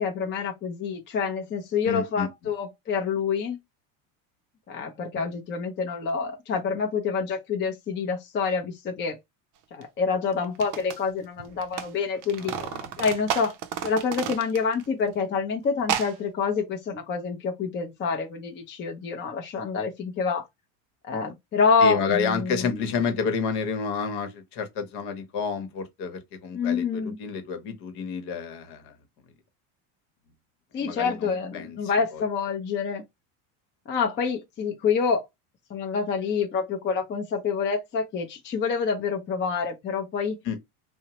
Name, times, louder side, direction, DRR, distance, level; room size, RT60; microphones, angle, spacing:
voice 1, 0.0-3.6 4.7-9.2 9.7-12.5 13.0-13.5 13.8-20.5 21.1-22.8 26.5-27.2 30.7-33.0 33.9-35.3 35.7-40.4, left 5 dB, 25° left, 0.5 m, -27 dB
voice 2, 1.8-2.3 12.4-13.1 21.8-28.9 30.8-31.8 32.1-32.2 40.4-40.6, left 5 dB, 60° left, 1.0 m, -30 dB
sound 1, 9.8-9.9 10.4-11.9 12.1-14.9 15.1-15.2 15.8-16.2, right 9 dB, 45° right, 0.5 m, -32 dB
2.7 x 2.1 x 2.8 m
supercardioid pair, 115°, 45 cm